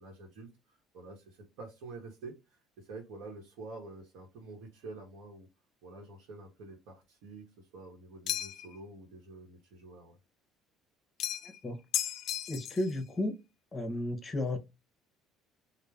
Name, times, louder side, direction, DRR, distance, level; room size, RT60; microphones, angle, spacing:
voice 1, 0.0-5.5 5.8-10.2, right 3 dB, 80° right, 0.9 m, -48 dB
sound 1, 8.3-8.8 11.2-11.6 11.9-12.9, left 10 dB, 55° left, 0.3 m, -34 dB
voice 2, 11.4-11.8 12.5-13.3 13.7-14.6, left 1 dB, 20° left, 0.7 m, -33 dB
3.1 x 2.0 x 2.3 m
cardioid pair, 125°, 0 cm